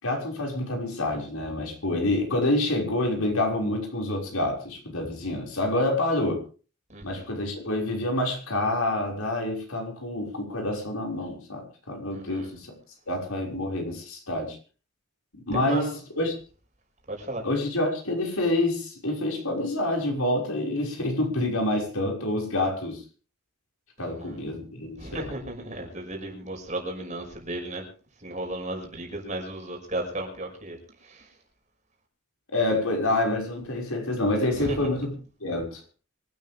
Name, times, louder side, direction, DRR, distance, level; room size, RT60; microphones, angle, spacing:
voice 1, 0.0-6.4 7.0-12.7 13.1-14.6 15.3-16.4 17.4-23.0 24.0-25.3 32.5-35.1 35.4-35.8, left 1 dB, 85° left, 1 dB, 6.0 m, -27 dB
voice 2, 6.9-7.3 12.1-12.5 15.5-16.0 17.1-17.4 24.0-24.4 25.0-27.8 28.2-31.3 34.6-34.9, right 1 dB, 35° right, 2 dB, 6.1 m, -35 dB
25.0 x 13.0 x 3.6 m, 0.38 s
head